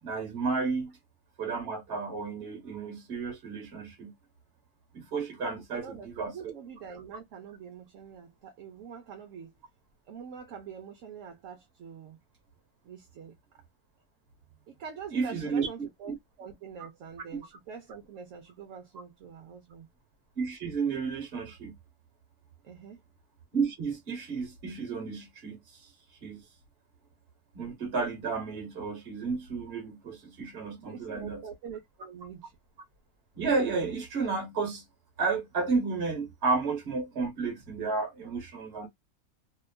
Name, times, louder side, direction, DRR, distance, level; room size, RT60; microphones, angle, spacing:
voice 1, 0.0-1.0 1.4-4.1 4.9-6.3 15.1-15.7 17.3-17.4 20.4-21.7 23.5-25.9 26.2-26.4 27.5-31.4 33.3-34.8 35.2-38.9, right 4 dB, 45° right, 1.1 m, -32 dB
voice 2, 5.7-9.5 10.1-12.2 12.8-13.4 14.7-19.9 22.6-23.0 30.7-32.5, right 7 dB, 65° right, 0.9 m, -45 dB
2.8 x 2.3 x 2.2 m
omnidirectional pair, 1.6 m